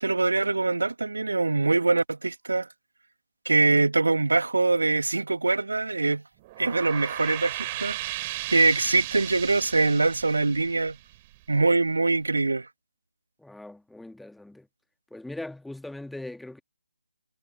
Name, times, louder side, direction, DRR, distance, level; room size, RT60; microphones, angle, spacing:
voice 1, 0.0-2.7 3.5-6.2 6.6-8.0 8.5-11.0 11.5-12.7, right 3 dB, 60° right, 2.4 m, -23 dB
sound 1, 6.4-11.7, right 18 dB, 20° right, 4.4 m, -36 dB
voice 2, 13.4-14.7 15.1-16.6, left 2 dB, ahead, 2.0 m, -40 dB
figure-of-eight pair, 145°, 0 cm